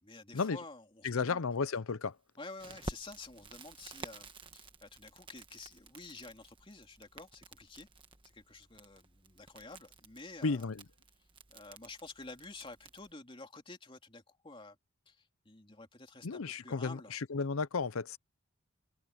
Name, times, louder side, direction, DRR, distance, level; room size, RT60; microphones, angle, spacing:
voice 1, 0.0-1.4 2.4-7.9 8.2-10.7 11.5-14.8 15.1-17.1, left 3 dB, 25° left, 3.2 m, -50 dB
voice 2, 1.0-2.1 10.4-10.8 16.2-18.2, left 4 dB, 85° left, 0.7 m, -33 dB
Crackle, 2.6-13.1, right 2 dB, 25° right, 1.4 m, -51 dB
head